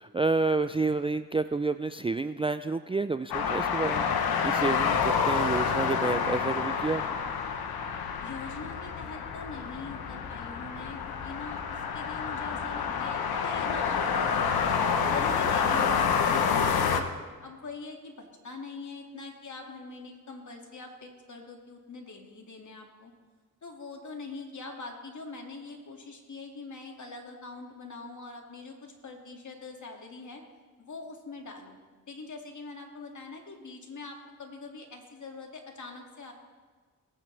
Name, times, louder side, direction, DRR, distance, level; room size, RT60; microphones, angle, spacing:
voice 1, 0.0-7.2, right 3 dB, 15° right, 10 dB, 0.4 m, -29 dB
sound 1, 3.3-17.0, left 6 dB, 85° left, 0.9 m, -28 dB
voice 2, 8.2-11.6 11.9-23.1 23.6-30.4 30.8-31.8 32.1-36.3, left 3 dB, 55° left, 2 dB, 2.2 m, -43 dB
19.5 x 9.0 x 3.3 m, 1.4 s
cardioid pair, 55°, 36 cm